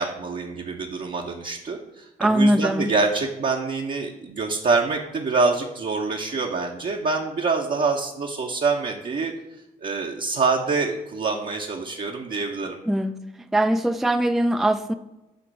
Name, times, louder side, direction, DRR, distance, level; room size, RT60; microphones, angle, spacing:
voice 1, 0.0-9.3 9.8-12.8, right 4 dB, 45° right, -1 dB, 0.9 m, -25 dB
voice 2, 2.2-2.9 12.9-13.2 13.5-14.9, right 1 dB, ahead, 8 dB, 0.5 m, -21 dB
7.8 x 3.0 x 6.1 m, 0.99 s
hypercardioid pair, 40°, 20 cm